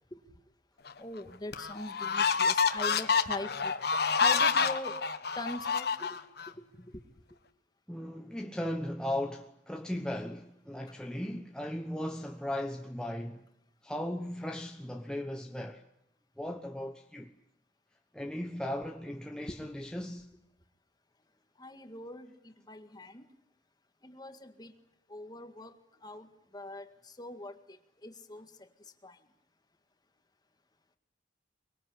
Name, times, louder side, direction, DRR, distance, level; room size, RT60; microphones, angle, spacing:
sound 1, 0.9-1.0 1.5-6.5, left 5 dB, 60° left, 1.4 m, -28 dB
voice 1, 1.0-3.7 4.2-5.0 5.4-6.1 19.5-19.6 21.6-22.3 22.7-23.2 24.0-24.7 25.1-25.7 26.0-26.3 26.5-26.9 27.2-27.5 28.0-28.5 29.0-29.1, left 1 dB, 20° left, 1.9 m, -41 dB
voice 2, 7.9-13.4 13.8-15.8 16.4-17.3 18.1-20.3, left 1 dB, 5° left, 1.1 m, -37 dB
24.0 x 22.5 x 9.9 m
head